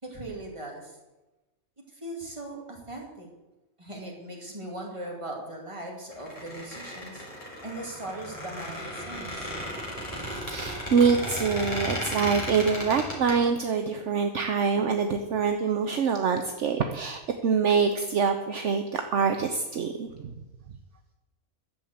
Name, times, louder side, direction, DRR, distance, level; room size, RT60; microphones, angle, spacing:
voice 1, 0.0-1.0 1.9-3.3 3.8-7.2 7.6-9.5, right 1 dB, 20° right, -1 dB, 2.6 m, -39 dB
Squeak, 6.1-13.3, equal, 25° left, 4.2 m, -35 dB
voice 2, 10.4-20.3, right 5 dB, 60° right, 6 dB, 1.1 m, -25 dB
11.5 x 7.2 x 8.0 m, 1.1 s
omnidirectional pair, 1.5 m